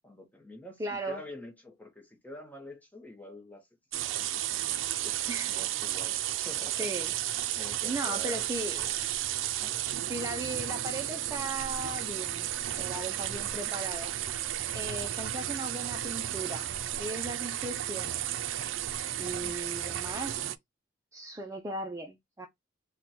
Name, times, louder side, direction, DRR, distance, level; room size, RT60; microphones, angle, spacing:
voice 1, 0.0-3.7 4.2-4.9 5.5-6.9 7.5-8.5 9.5-9.8 13.6-13.7 19.3-19.5, left 1 dB, 10° left, 0.8 m, -47 dB
voice 2, 0.8-1.2 5.0-5.6 6.8-7.1 7.8-9.1 10.1-12.5 12.8-14.2 14.7-16.7 17.0-18.3 19.2-20.5 21.1-22.5, right 1 dB, 15° right, 0.4 m, -37 dB
sound 1, 3.9-20.6, right 12 dB, 90° right, 0.4 m, -33 dB
2.9 x 2.2 x 4.0 m
head